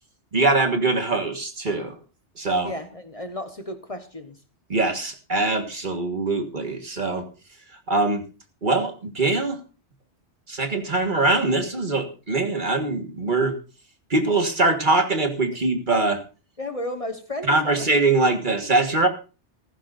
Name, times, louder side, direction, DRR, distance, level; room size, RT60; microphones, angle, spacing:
voice 1, 0.3-1.9 2.4-2.7 4.7-7.3 7.9-8.2 8.6-9.6 10.5-13.6 14.1-16.2 17.5-19.1, right 2 dB, 45° right, 6 dB, 1.7 m, -22 dB
voice 2, 2.6-4.4 16.6-17.8, left 1 dB, 30° left, 7 dB, 1.2 m, -33 dB
16.0 x 15.0 x 2.6 m, 0.34 s
omnidirectional pair, 1.2 m